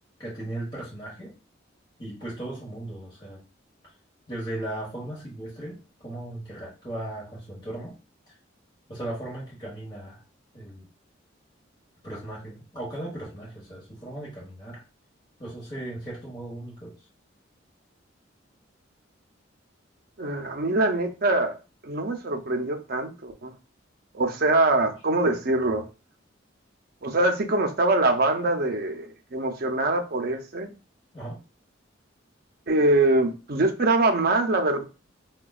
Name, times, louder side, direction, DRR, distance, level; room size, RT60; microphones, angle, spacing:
voice 1, 0.2-1.3 2.0-3.4 4.3-7.9 8.9-10.2 10.5-10.9 12.0-14.8 15.4-16.9 31.1-31.4, right 1 dB, 25° left, 1.2 m, -37 dB
voice 2, 20.2-21.6 21.8-23.5 24.1-25.8 27.0-30.7 32.7-34.8, right 2 dB, 50° right, 0.6 m, -23 dB
4.9 x 2.2 x 2.3 m
head